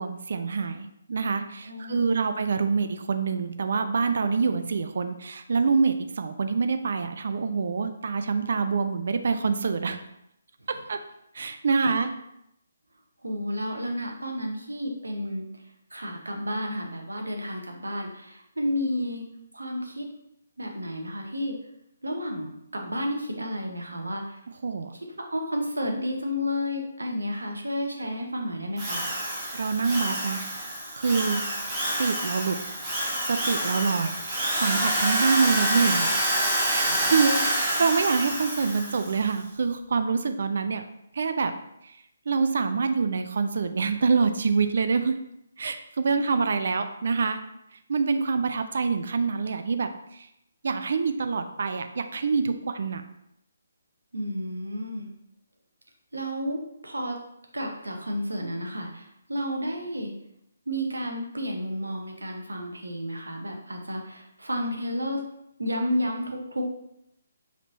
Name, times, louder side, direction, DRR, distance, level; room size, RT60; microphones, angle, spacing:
voice 1, 0.0-10.0 10.9-11.0 11.3-12.1 24.6-24.9 29.5-30.5 31.0-31.4 32.0-32.6 33.3-36.2 36.7-40.8 41.1-41.5 42.3-45.2 45.6-47.4 47.9-50.3 50.6-53.0, right 5 dB, 50° right, 8 dB, 0.4 m, -26 dB
voice 2, 1.6-2.3 10.7-10.8 13.2-15.5 15.9-19.2 19.5-20.1 20.6-21.6 22.0-24.4 24.9-29.0 36.9-37.1 54.1-55.1 56.1-57.2 57.5-60.1 60.7-65.2 65.6-66.6, equal, 75° right, 2 dB, 0.9 m, -31 dB
Drill, 28.8-39.2, right 1 dB, 15° right, 1.1 m, -27 dB
4.9 x 3.6 x 2.7 m, 0.79 s
figure-of-eight pair, 140°, 0 cm